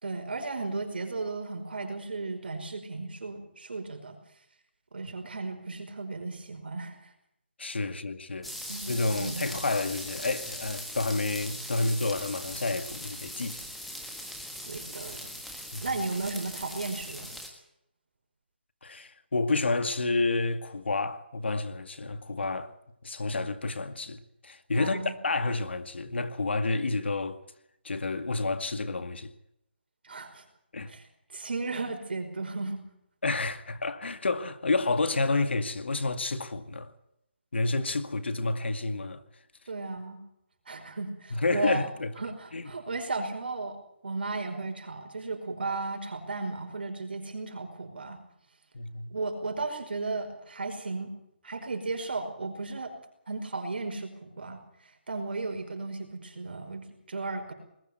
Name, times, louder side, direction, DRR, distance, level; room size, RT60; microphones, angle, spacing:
voice 1, 0.0-4.2 4.9-7.0 8.7-8.8 9.2-9.5 14.6-15.3 15.8-17.3 24.8-25.2 30.0-30.4 30.9-31.1 31.3-32.8 39.7-40.2 40.7-41.9 42.2-43.8 44.0-48.2 49.1-51.1 51.4-52.9 53.3-54.6 55.1-57.5, right 3 dB, 60° right, 5.3 m, -35 dB
voice 2, 7.6-8.5 8.9-13.6 15.7-15.8 18.8-22.7 23.0-27.4 27.8-29.3 30.7-30.9 33.2-36.9 37.5-39.2 41.3-42.1 42.5-42.7 48.7-49.1, left 3 dB, 80° left, 2.2 m, -30 dB
sound 1, 8.4-17.5, equal, ahead, 1.5 m, -40 dB
21.0 x 14.5 x 9.4 m
hypercardioid pair, 175°, 6 cm